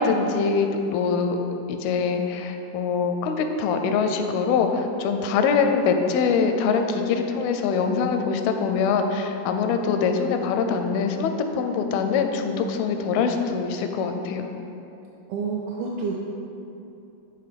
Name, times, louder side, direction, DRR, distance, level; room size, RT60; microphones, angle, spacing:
voice 1, 0.0-1.4 1.7-14.5, left 5 dB, 85° left, 6 dB, 2.4 m, -23 dB
voice 2, 15.3-16.1, right 5 dB, 80° right, -3 dB, 2.2 m, -29 dB
6.7 x 3.7 x 5.7 m, 2.9 s
omnidirectional pair, 4.3 m